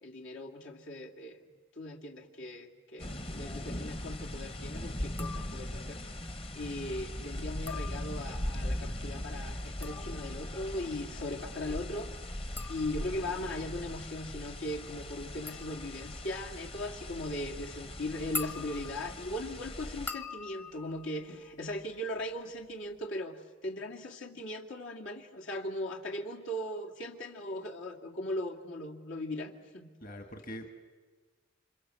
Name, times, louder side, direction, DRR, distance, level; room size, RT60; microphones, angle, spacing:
voice 1, 0.0-1.4 1.8-6.0 6.5-12.2 12.7-29.9, left 1 dB, 80° left, 1 dB, 2.4 m, -39 dB
sound 1, 3.0-20.1, left 1 dB, 30° left, 1.0 m, -40 dB
sound 2, 5.1-5.9 7.5-8.5 9.5-22.2 22.5-23.1, left 4 dB, 10° left, 0.7 m, -45 dB
voice 2, 30.0-30.7, equal, 45° left, 6 dB, 2.0 m, -43 dB
28.5 x 26.0 x 7.7 m, 1.4 s
head